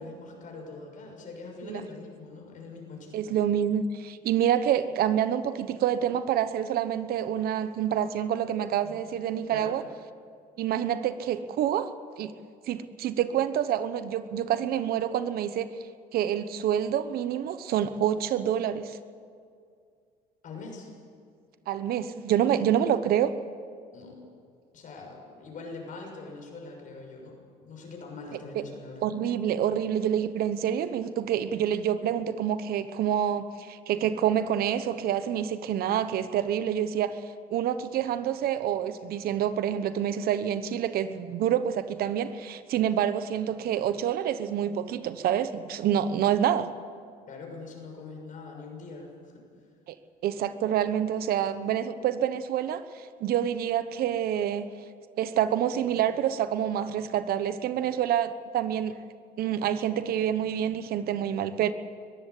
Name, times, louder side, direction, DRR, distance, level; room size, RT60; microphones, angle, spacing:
voice 1, 0.0-3.4 8.8-9.0 9.5-9.7 20.4-20.9 23.9-24.2 24.7-27.4 27.6-29.0 47.3-49.4, left 3 dB, 50° left, 1 dB, 6.6 m, -43 dB
voice 2, 3.1-9.8 10.6-11.9 12.2-12.3 12.7-15.7 16.1-19.0 21.7-23.3 28.5-28.6 29.0-46.7 49.9-50.0 50.2-54.7 55.2-59.0 59.4-61.7, right 10 dB, 65° right, 12 dB, 1.1 m, -27 dB
22.0 x 15.0 x 8.4 m, 2.2 s
cardioid pair, 100°, 17 cm